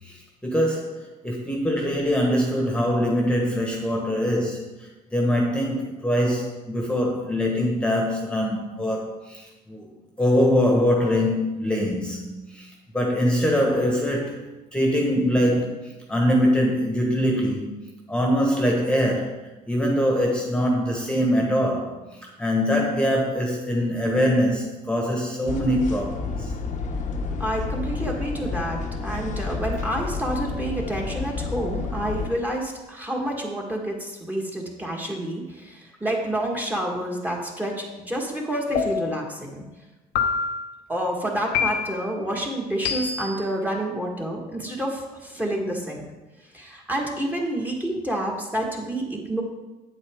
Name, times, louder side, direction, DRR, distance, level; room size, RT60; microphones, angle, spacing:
voice 1, 0.0-4.6 5.1-9.9 10.2-14.4 14.7-17.7 18.1-19.4 19.7-22.0 22.4-26.5, equal, 5° left, -1 dB, 1.4 m, -23 dB
sound 1, 25.5-32.3, left 4 dB, 45° left, 1.0 m, -30 dB
voice 2, 27.4-39.6 40.9-46.0 46.5-49.4, right 1 dB, 10° right, 0 dB, 1.6 m, -28 dB
sound 2, 38.8-39.3 40.2-40.7 41.5-42.1 42.8-43.4, left 6 dB, 80° left, 0.9 m, -26 dB
8.2 x 8.1 x 3.6 m, 1.1 s
cardioid pair, 110°, 17 cm